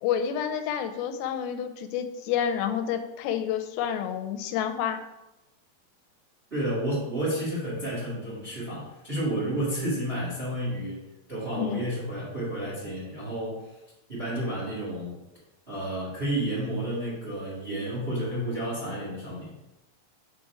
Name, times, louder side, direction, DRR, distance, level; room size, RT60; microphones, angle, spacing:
voice 1, 0.0-5.0 11.6-11.8, left 9 dB, 85° left, 8 dB, 2.4 m, -29 dB
voice 2, 6.5-11.0 11.3-13.7 14.1-15.2 15.7-19.5, right 1 dB, 25° right, -7 dB, 1.5 m, -31 dB
6.3 x 4.1 x 4.8 m, 0.95 s
omnidirectional pair, 4.3 m